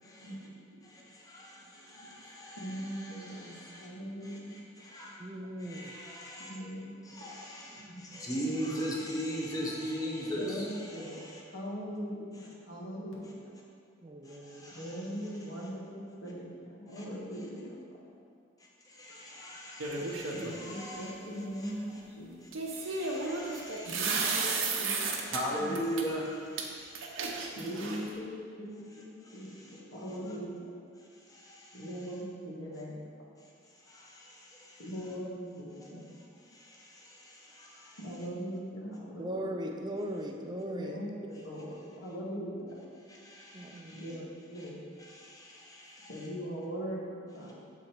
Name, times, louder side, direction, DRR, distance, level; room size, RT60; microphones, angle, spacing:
voice 1, 0.0-0.3 0.8-3.9 4.2-5.2 5.6-6.5 7.0-11.4 14.2-15.6 16.9-17.0 18.8-22.0 22.4-24.5 25.2-27.6 29.2-29.8 30.3-30.4 31.0-31.9 33.4-34.9 35.8-38.0 43.1-44.2 44.6-44.7 45.0-46.3, equal, 20° left, -4 dB, 0.9 m, -40 dB
voice 2, 2.6-4.6 6.4-6.9 7.8-8.0 10.3-11.2 11.5-13.3 14.7-17.8 20.3-22.3 23.9-25.3 25.6-25.8 27.5-30.7 31.7-33.0 34.8-36.1 38.0-39.4 40.8-42.8 43.9-44.8 46.1-47.6, equal, 90° left, -5 dB, 1.5 m, -40 dB
voice 3, 5.2-5.9 14.0-14.7 39.2-41.0 43.5-44.3, equal, 20° right, 2 dB, 0.4 m, -39 dB
sound 1, 19.8-20.5 22.5-25.4 25.8-26.0 26.6-26.7 26.9-28.1, right 4 dB, 90° right, 0.8 m, -33 dB
7.2 x 3.9 x 4.4 m, 2.2 s
head